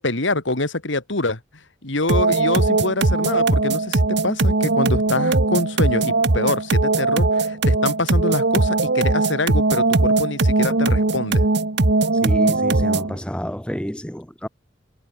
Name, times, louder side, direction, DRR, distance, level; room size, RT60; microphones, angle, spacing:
voice 1, 0.0-1.4 1.8-11.5, left 2 dB, 75° left, 2.8 m, -25 dB
sound 1, 2.1-13.2, right 2 dB, 60° right, 1.2 m, -19 dB
voice 2, 12.2-14.5, equal, 5° left, 0.9 m, -29 dB
head